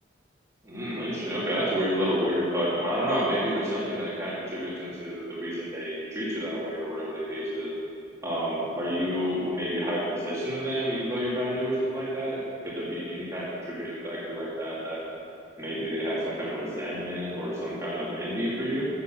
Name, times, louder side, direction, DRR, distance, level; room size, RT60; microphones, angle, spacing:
voice 1, 0.6-7.7 8.2-15.0 15.6-18.9, equal, 15° right, -8 dB, 2.3 m, -30 dB
10.0 x 7.4 x 7.5 m, 2.8 s
head